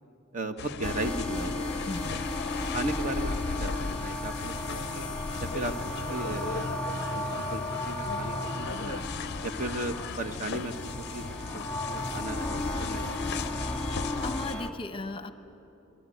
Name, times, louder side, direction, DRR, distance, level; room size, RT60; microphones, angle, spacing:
voice 1, 0.3-2.0 2.7-5.0 5.4-5.7 6.1-9.0 9.4-11.2 11.5-13.1, right 2 dB, 40° right, 7 dB, 1.2 m, -36 dB
sound 1, 0.6-14.6, left 6 dB, 55° left, 0.5 m, -38 dB
sound 2, 0.8-14.7, left 1 dB, 5° left, 1.9 m, -34 dB
voice 2, 1.9-2.3 13.8-15.3, left 3 dB, 25° left, 9 dB, 0.9 m, -38 dB
25.5 x 20.0 x 9.2 m, 3.0 s
head